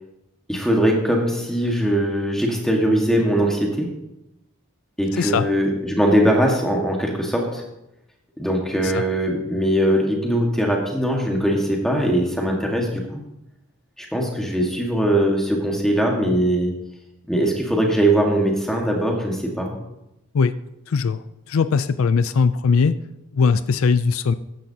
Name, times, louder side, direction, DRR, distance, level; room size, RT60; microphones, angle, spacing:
voice 1, 0.5-3.9 5.0-7.6 8.4-13.2 14.0-16.7 17.3-19.7, right 1 dB, ahead, 0 dB, 1.6 m, -21 dB
voice 2, 5.1-5.5 8.8-9.0 20.3-20.5 20.9-21.2 21.5-22.9 23.3-24.3, left 5 dB, 75° left, 14 dB, 0.4 m, -19 dB
14.0 x 10.5 x 2.8 m, 0.89 s
head